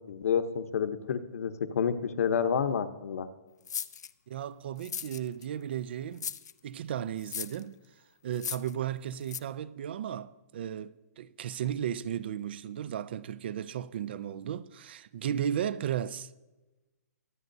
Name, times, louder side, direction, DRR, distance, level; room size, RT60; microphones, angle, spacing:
voice 1, 0.1-3.3, left 7 dB, 60° left, 0.9 m, -29 dB
sound 1, 3.7-4.1 4.8-5.5 6.2-6.5 7.2-7.6 8.3-8.7 9.3-9.4, left 7 dB, 85° left, 0.6 m, -37 dB
voice 2, 4.3-6.4 6.6-7.7 8.2-16.3, right 10 dB, 40° right, 0.3 m, -35 dB
24.0 x 9.4 x 2.7 m
hypercardioid pair, 170°, 9 cm